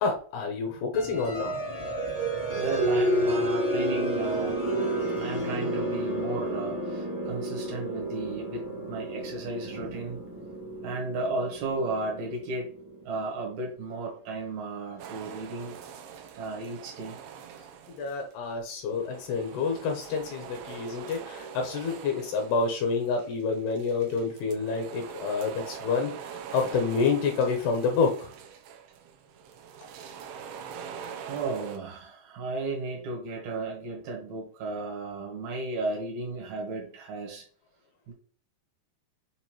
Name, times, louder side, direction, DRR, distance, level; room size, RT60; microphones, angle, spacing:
voice 1, 0.0-1.6 17.9-28.3, left 4 dB, 80° left, 2 dB, 2.6 m, -28 dB
sound 1, 0.9-13.4, right 1 dB, 40° right, 0.5 m, -31 dB
voice 2, 2.5-4.6 5.2-10.2 10.8-12.7 13.1-15.8 16.3-17.2 31.2-37.4 38.1-38.2, right 2 dB, 65° right, 0 dB, 1.9 m, -34 dB
sound 2, 15.0-18.3 18.6-31.8, right 7 dB, 85° right, 2.1 m, -44 dB
6.8 x 2.5 x 3.0 m, 0.43 s
omnidirectional pair, 5.0 m